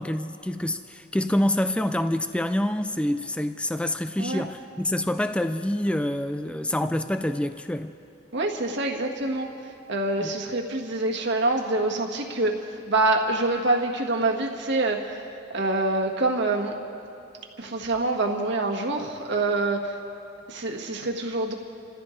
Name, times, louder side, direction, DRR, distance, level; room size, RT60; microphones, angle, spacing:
voice 1, 0.0-7.9 10.2-10.3, left 1 dB, 5° left, 10 dB, 0.3 m, -26 dB
voice 2, 8.3-9.5 9.9-12.6 12.9-15.0 15.5-16.7 17.6-19.9 20.5-21.6, right 2 dB, 60° right, 1 dB, 1.6 m, -25 dB
29.0 x 14.5 x 3.2 m, 2.6 s
head